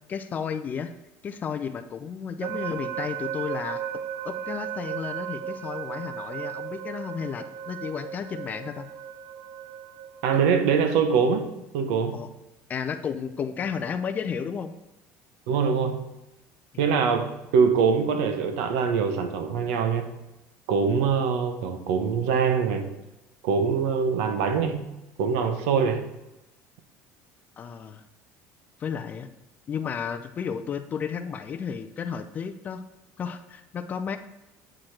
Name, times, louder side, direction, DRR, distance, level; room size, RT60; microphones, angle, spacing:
voice 1, 0.1-0.9 1.2-3.8 4.2-8.9 12.1-12.3 12.7-14.7 27.6-28.0 28.8-29.3 29.7-32.8 33.2-34.2, left 7 dB, 30° left, 9 dB, 0.5 m, -33 dB
sound 1, 2.4-10.4, right 9 dB, 50° right, 0.6 m, -35 dB
voice 2, 10.2-11.5 11.7-12.2 15.5-16.1 16.8-20.2 20.7-22.9 23.4-24.9 25.2-26.1, right 6 dB, 90° right, 7 dB, 1.3 m, -23 dB
8.8 x 5.0 x 5.9 m, 0.97 s
cardioid pair, 160°, 6 cm